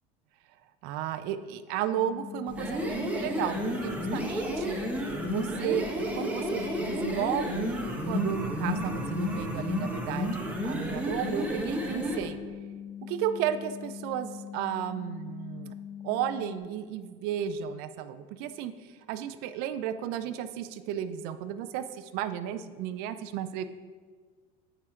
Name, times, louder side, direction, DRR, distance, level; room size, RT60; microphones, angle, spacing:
voice 1, 0.8-4.8 5.3-7.8 8.0-12.4 13.0-15.7 16.0-23.6, right 10 dB, 55° right, 11 dB, 0.5 m, -33 dB
sound 1, 1.9-16.6, left 9 dB, 60° left, 0.7 m, -42 dB
sound 2, 2.5-12.3, equal, 5° right, 1.0 m, -31 dB
9.2 x 3.8 x 4.4 m, 1.5 s
supercardioid pair, 125°, 19 cm